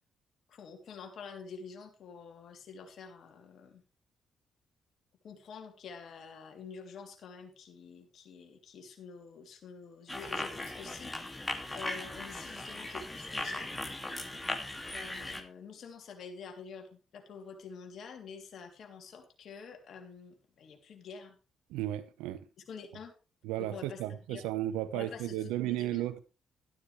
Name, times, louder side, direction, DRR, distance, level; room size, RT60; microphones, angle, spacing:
voice 1, 0.5-3.8 5.2-13.9 14.9-21.4 22.7-23.1 23.6-24.0 24.3-24.5 24.9-26.0, left 5 dB, 60° left, 3.2 m, -48 dB
sound 1, 10.1-15.4, left 1 dB, 15° left, 2.6 m, -38 dB
voice 2, 21.7-22.4 23.4-26.2, right 13 dB, 80° right, 0.9 m, -34 dB
13.0 x 12.0 x 3.4 m
hypercardioid pair, 50°, 0 cm